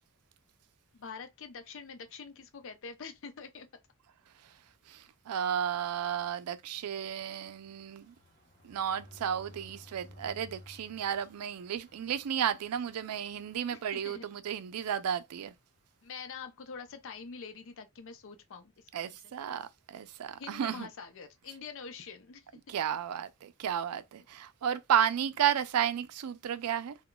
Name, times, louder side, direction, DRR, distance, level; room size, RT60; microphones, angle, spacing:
voice 1, 0.9-3.7 13.7-14.3 16.0-19.6 20.4-22.5, left 5 dB, 60° left, 0.5 m, -45 dB
voice 2, 4.9-8.1 8.6-15.5 18.9-20.9 22.7-27.0, right 9 dB, 80° right, 0.4 m, -33 dB
sound 1, 6.1-14.9 15.3-15.5 15.7-15.8 16.1-16.4, left 1 dB, 35° left, 0.9 m, -57 dB
3.7 x 2.2 x 2.2 m
head